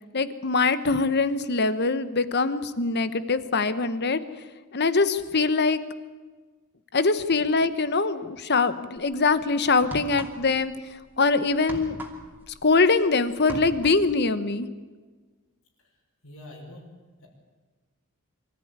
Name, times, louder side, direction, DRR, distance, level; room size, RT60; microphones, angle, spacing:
voice 1, 0.1-4.2 4.7-5.8 6.9-12.0 12.6-14.7, left 3 dB, 55° left, 13 dB, 1.1 m, -23 dB
sound 1, 9.0-9.2 9.8-10.7 10.9-13.1 13.3-14.1, right 1 dB, 10° right, 2.8 m, -39 dB
voice 2, 15.8-17.0, left 1 dB, 85° left, -2 dB, 5.9 m, -46 dB
24.5 x 14.0 x 9.6 m, 1.4 s
head